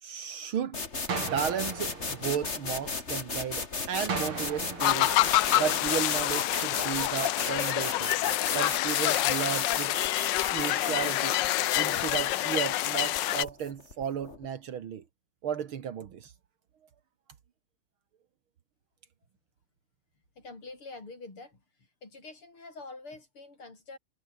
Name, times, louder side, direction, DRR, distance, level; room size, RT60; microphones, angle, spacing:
voice 1, 0.0-0.8 1.2-5.1 5.6-8.1 8.5-10.0 10.5-11.4 11.8-15.0 15.4-16.3, right 8 dB, 75° right, 2.3 m, -34 dB
sound 1, 0.7-14.5, left 3 dB, 30° left, 2.8 m, -36 dB
sound 2, 1.1-3.1 4.1-6.1, right 5 dB, 90° right, 4.1 m, -38 dB
sound 3, 4.8-13.4, left 15 dB, 70° left, 1.2 m, -27 dB
voice 2, 20.4-21.6 22.0-24.0, left 3 dB, 85° left, 7.1 m, -45 dB
omnidirectional pair, 2.3 m